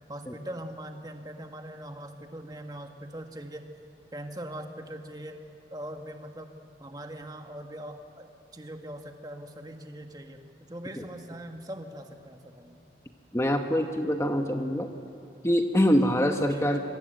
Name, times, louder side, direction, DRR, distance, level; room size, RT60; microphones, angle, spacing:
voice 1, 0.1-3.7 4.1-5.4 5.7-6.5 6.8-12.8 16.5-16.8, right 1 dB, 20° right, 5 dB, 1.7 m, -41 dB
voice 2, 13.3-14.9 15.4-16.8, equal, 15° left, 5 dB, 1.1 m, -24 dB
26.0 x 23.5 x 9.1 m, 2.8 s
head